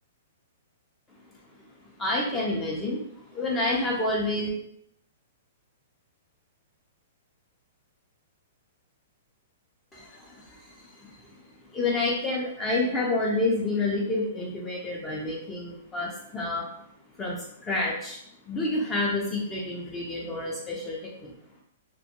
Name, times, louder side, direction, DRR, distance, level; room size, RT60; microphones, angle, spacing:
voice 1, 2.0-4.5 9.9-16.7 17.2-18.2 18.5-21.3, left 2 dB, 15° left, -4 dB, 0.4 m, -29 dB
2.2 x 2.1 x 2.8 m, 0.72 s
hypercardioid pair, 145°, 0 cm